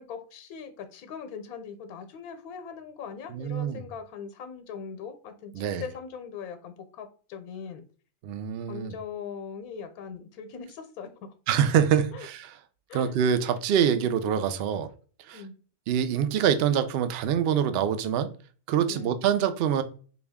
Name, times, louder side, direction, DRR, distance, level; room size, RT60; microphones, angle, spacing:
voice 1, 0.0-7.8 8.7-11.3 12.1-12.3 12.9-13.1 15.3-15.5 18.9-19.2, left 6 dB, 85° left, 1.1 m, -40 dB
voice 2, 3.3-3.8 5.5-5.8 8.2-8.9 11.5-12.5 12.9-14.9 15.3-15.4 15.9-18.3 18.7-19.8, right 8 dB, 70° right, 0.6 m, -25 dB
4.3 x 2.3 x 3.4 m
omnidirectional pair, 1.5 m